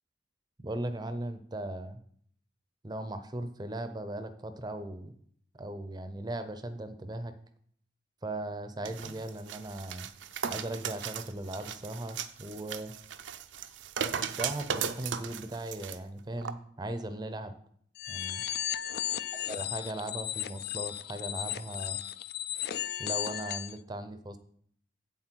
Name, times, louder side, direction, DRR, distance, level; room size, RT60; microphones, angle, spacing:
voice 1, 0.6-2.0 2.8-5.1 5.5-7.3 8.2-10.1 10.5-12.9 14.1-17.5 18.1-18.4 19.5-22.0 23.0-24.4, right 1 dB, 20° right, 10 dB, 0.6 m, -38 dB
sound 1, 8.8-16.0 16.4-16.5, right 7 dB, 75° right, 0.6 m, -37 dB
sound 2, 18.0-23.8, left 12 dB, 55° left, 0.4 m, -35 dB
8.1 x 7.7 x 4.5 m, 0.63 s
head